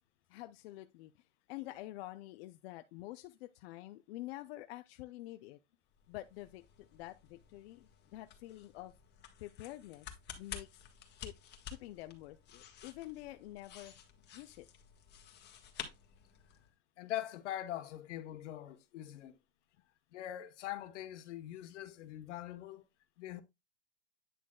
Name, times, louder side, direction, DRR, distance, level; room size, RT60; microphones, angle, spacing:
voice 1, 0.3-5.6 6.1-8.9 9.4-10.8 11.2-11.4 11.7-13.9 14.3-14.7, left 17 dB, 55° left, 0.6 m, -48 dB
sound 1, 5.9-16.7, left 8 dB, 30° left, 1.5 m, -52 dB
voice 2, 17.0-19.4 20.1-22.8 23.2-23.4, left 12 dB, 75° left, 1.2 m, -42 dB
9.3 x 6.2 x 2.2 m
supercardioid pair, 135°, 36 cm